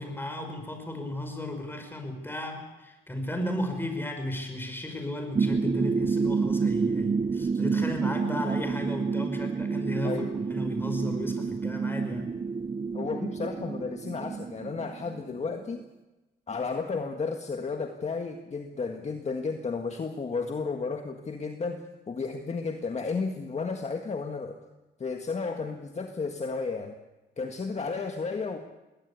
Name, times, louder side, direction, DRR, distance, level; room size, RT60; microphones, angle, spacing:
voice 1, 0.0-12.3, left 1 dB, 10° left, 5 dB, 5.4 m, -34 dB
sound 1, 5.3-15.8, right 5 dB, 25° right, 0.7 m, -29 dB
voice 2, 12.9-15.8 16.5-24.6 25.0-27.0 27.4-28.6, left 4 dB, 35° left, 5 dB, 1.7 m, -33 dB
21.0 x 18.0 x 8.5 m, 1.1 s
cardioid pair, 90°, 20 cm